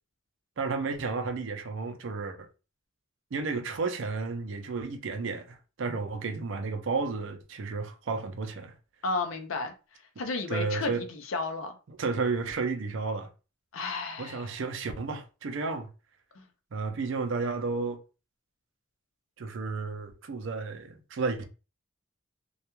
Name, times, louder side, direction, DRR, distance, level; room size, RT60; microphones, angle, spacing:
voice 1, 0.6-2.5 3.3-8.7 10.5-11.0 11.9-13.3 14.2-15.9 16.7-18.0 19.4-21.4, right 4 dB, 65° right, 0.5 m, -32 dB
voice 2, 9.0-9.7 10.2-11.7 13.7-14.6 16.4-16.5, left 3 dB, 80° left, 0.5 m, -33 dB
2.3 x 2.2 x 2.9 m
head